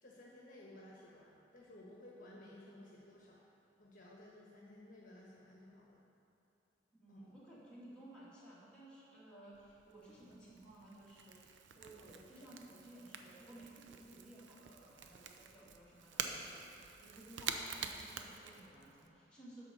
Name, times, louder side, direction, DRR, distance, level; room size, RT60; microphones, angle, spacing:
voice 1, 0.0-3.4 3.8-6.0 7.1-7.4 12.1-12.2, left 1 dB, 50° left, -4 dB, 1.2 m, -56 dB
voice 2, 7.0-16.7 17.0-19.7, right 1 dB, 5° left, -9 dB, 2.1 m, -56 dB
Crackle / Crack, 9.5-19.1, right 6 dB, 85° right, 0.6 m, -47 dB
10.5 x 4.2 x 6.6 m, 2.7 s
head